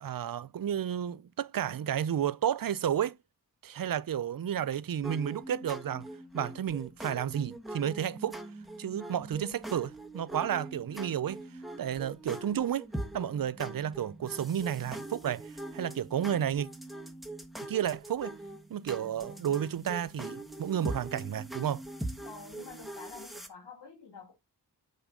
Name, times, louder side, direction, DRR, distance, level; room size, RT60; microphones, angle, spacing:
voice 1, 0.0-3.2 3.6-6.1 6.3-8.4 8.8-11.4 11.8-12.9 13.1-16.7 17.6-18.3 18.7-21.8, right 9 dB, 60° right, 0.6 m, -32 dB
sound 1, 5.0-23.5, right 1 dB, ahead, 1.3 m, -42 dB
voice 2, 22.2-24.3, left 4 dB, 90° left, 2.3 m, -48 dB
7.3 x 5.1 x 3.7 m
wide cardioid pair, 75°, 39 cm